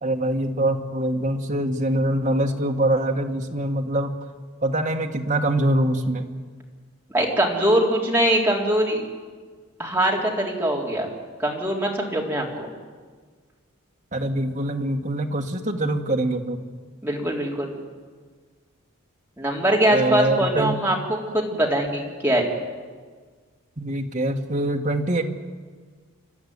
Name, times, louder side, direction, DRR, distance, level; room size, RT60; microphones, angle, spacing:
voice 1, 0.0-4.1 4.6-6.3 14.1-16.7 19.9-20.7 23.8-25.2, right 1 dB, 35° right, 3 dB, 1.7 m, -24 dB
voice 2, 7.1-9.0 9.8-11.1 11.4-12.7 17.0-17.7 19.4-22.4, right 1 dB, 10° right, -2 dB, 3.6 m, -22 dB
29.5 x 12.0 x 9.6 m, 1.5 s
head